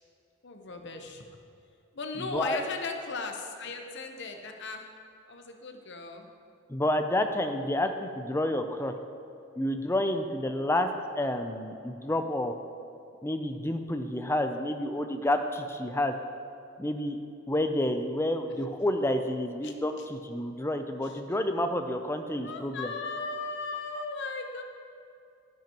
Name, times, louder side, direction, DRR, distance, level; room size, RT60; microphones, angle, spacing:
voice 1, 0.4-1.4 1.9-4.9 5.3-6.3 18.5-18.6 19.6-20.1 21.0-21.1 22.4-24.6, left 4 dB, 60° left, 4 dB, 0.9 m, -37 dB
voice 2, 2.2-2.6 6.7-8.9 9.6-10.9 11.2-12.5 13.2-16.1 16.8-17.2 17.5-22.9, left 1 dB, 10° left, 7 dB, 0.5 m, -29 dB
12.0 x 10.0 x 3.0 m, 2.6 s
head